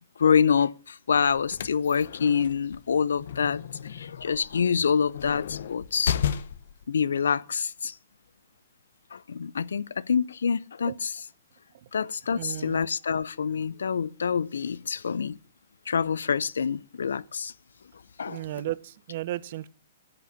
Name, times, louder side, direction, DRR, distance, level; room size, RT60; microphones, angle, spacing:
voice 1, 0.2-3.6 3.9-6.2 6.9-7.9 9.1-11.1 11.9-15.4 15.9-17.5 18.2-18.4, left 6 dB, 85° left, 0.5 m, -26 dB
sound 1, 1.3-6.8, left 8 dB, 70° left, 0.9 m, -34 dB
voice 2, 12.3-12.8 18.3-19.7, right 14 dB, 55° right, 0.7 m, -34 dB
11.0 x 6.8 x 8.6 m
hypercardioid pair, 135°, 0 cm